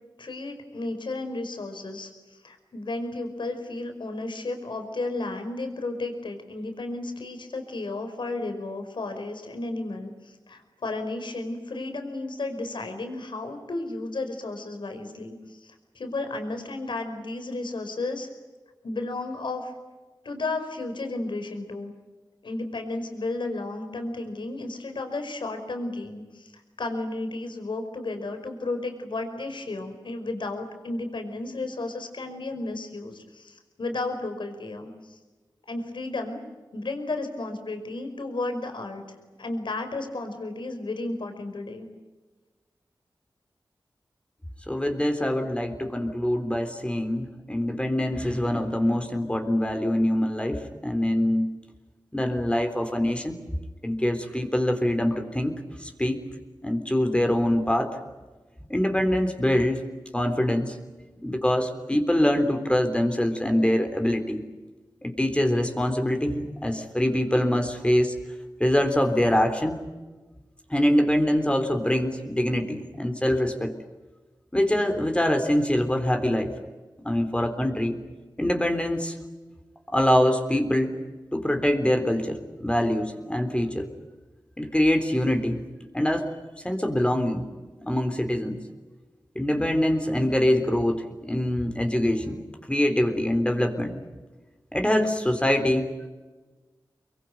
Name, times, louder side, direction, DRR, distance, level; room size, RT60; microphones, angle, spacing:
voice 1, 0.2-18.3 18.8-19.7 20.2-21.9 22.4-26.5 26.8-35.2 35.7-36.4 36.7-39.0 39.4-41.9, left 2 dB, 80° left, 6 dB, 5.1 m, -33 dB
voice 2, 44.7-51.5 52.1-53.4 53.8-56.2 56.6-57.9 58.7-59.8 60.1-60.8 61.2-64.4 65.0-68.1 68.6-69.8 70.7-73.7 74.5-76.5 77.0-78.0 78.4-79.2 79.9-80.9 81.3-83.9 84.6-85.6 85.9-86.3 86.6-87.4 87.9-88.6 89.4-92.4 92.7-94.0 94.7-96.1, left 1 dB, 15° left, 5 dB, 3.7 m, -24 dB
25.5 x 23.0 x 9.4 m, 1.3 s
cardioid pair, 50°, 8 cm